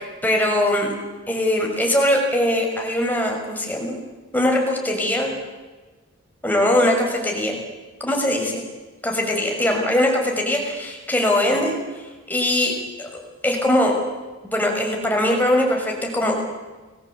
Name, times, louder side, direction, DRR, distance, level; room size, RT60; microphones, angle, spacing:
voice 1, 0.2-0.9 1.3-4.0 4.3-5.3 6.4-7.6 8.0-8.6 9.0-11.7 12.3-13.1 13.4-13.9 14.4-16.4, left 1 dB, 10° left, 1 dB, 6.1 m, -21 dB
30.0 x 21.5 x 8.4 m, 1.3 s
head